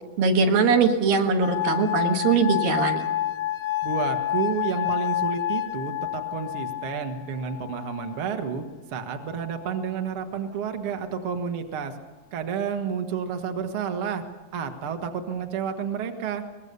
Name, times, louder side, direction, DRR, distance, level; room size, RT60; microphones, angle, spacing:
voice 1, 0.2-3.0, right 4 dB, 75° right, 3 dB, 3.3 m, -21 dB
sound 1, 1.4-8.4 9.2-9.8, left 13 dB, 90° left, 1.3 m, -29 dB
voice 2, 3.8-8.6 8.9-11.9 12.3-14.2 14.5-16.4, right 6 dB, 50° right, 5 dB, 1.7 m, -30 dB
23.5 x 20.0 x 6.9 m, 1.2 s
omnidirectional pair, 4.2 m